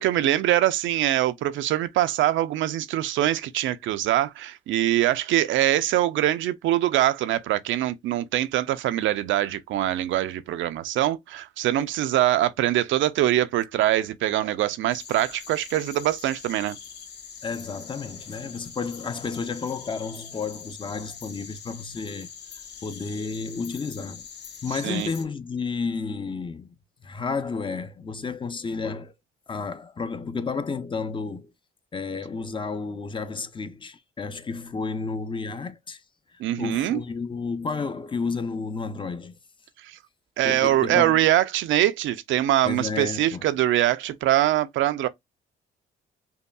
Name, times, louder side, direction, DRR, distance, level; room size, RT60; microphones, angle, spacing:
voice 1, 0.0-16.8 24.8-25.1 36.4-37.0 39.8-40.0 40.4-45.1, right 13 dB, 75° right, 0.4 m, -23 dB
sound 1, 14.9-25.2, left 6 dB, 60° left, 0.8 m, -43 dB
voice 2, 17.4-24.3 24.6-26.8 27.0-29.1 29.5-31.5 31.9-36.0 36.3-39.3 40.4-41.2 42.6-43.4, left 4 dB, 25° left, 0.4 m, -32 dB
5.4 x 2.3 x 2.2 m
cardioid pair, 90°, 20 cm